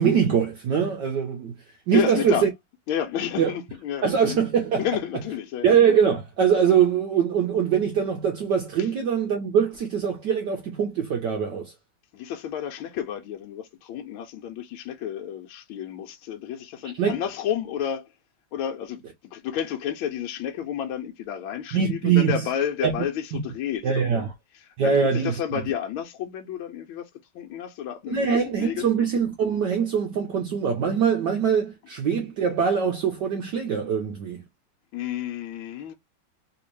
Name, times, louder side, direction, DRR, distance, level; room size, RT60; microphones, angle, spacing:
voice 1, 0.0-1.5 1.9-2.5 3.4-3.5 4.0-4.9 5.6-11.7 17.0-17.1 21.7-22.4 22.8-22.9 23.3-23.4 23.8-24.3 24.8-25.4 28.1-34.4, right 7 dB, 65° right, 1.2 m, -23 dB
voice 2, 1.9-2.5 2.9-4.4 4.8-5.7 8.8-8.9 12.1-18.1 18.5-24.3 24.5-27.1 27.3-28.9 34.9-35.9, left 9 dB, 75° left, 1.3 m, -31 dB
3.4 x 2.8 x 3.0 m
omnidirectional pair, 2.4 m